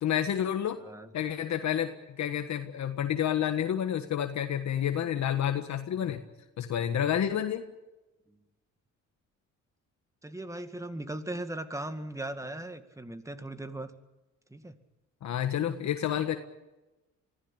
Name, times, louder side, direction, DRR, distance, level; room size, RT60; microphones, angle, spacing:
voice 1, 0.0-0.8 1.1-6.2 6.6-7.7 15.2-16.4, left 10 dB, 65° left, 7 dB, 1.5 m, -29 dB
voice 2, 0.8-1.1 5.9-6.1 10.2-13.9 14.5-14.8, right 1 dB, 10° right, 9 dB, 2.1 m, -38 dB
24.0 x 15.5 x 8.9 m, 1.0 s
cardioid pair, 90°, 30 cm